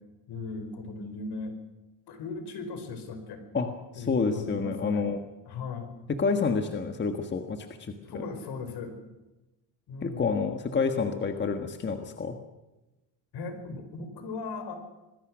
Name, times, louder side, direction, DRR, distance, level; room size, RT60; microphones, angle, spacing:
voice 1, 0.3-1.5 2.1-3.4 3.9-5.1 5.5-5.9 8.0-9.0 9.9-10.3 13.3-14.7, left 4 dB, 65° left, 8 dB, 5.0 m, -37 dB
voice 2, 3.5-5.2 6.1-8.3 10.0-12.4, left 5 dB, 25° left, 6 dB, 1.5 m, -29 dB
26.0 x 20.5 x 6.3 m, 1.0 s
cardioid pair, 150°, 42 cm